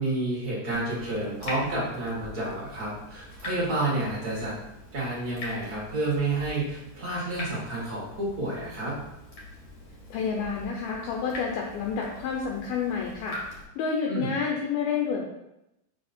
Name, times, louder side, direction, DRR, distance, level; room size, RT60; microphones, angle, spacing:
voice 1, 0.0-4.5 4.9-9.0 14.1-14.3, right 2 dB, 70° right, -6 dB, 0.8 m, -30 dB
Water tap faucet / Drip, 0.7-13.6, left 1 dB, 40° left, 2.0 m, -43 dB
voice 2, 10.1-13.4 13.8-15.2, left 6 dB, 75° left, 0 dB, 2.5 m, -29 dB
6.1 x 5.1 x 4.3 m, 0.89 s
omnidirectional pair, 4.7 m